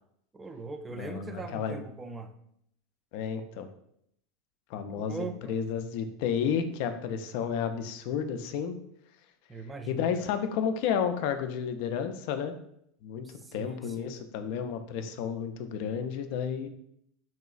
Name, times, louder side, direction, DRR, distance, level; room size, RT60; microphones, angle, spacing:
voice 1, 0.3-2.3 5.0-5.6 9.5-10.3 13.2-14.1, right 3 dB, 20° right, 8 dB, 0.3 m, -41 dB
voice 2, 0.9-1.8 3.1-3.7 4.7-8.8 9.9-12.5 13.0-16.7, left 7 dB, 65° left, 8 dB, 0.3 m, -32 dB
3.0 x 2.9 x 2.3 m, 0.73 s
hypercardioid pair, 90°, 0 cm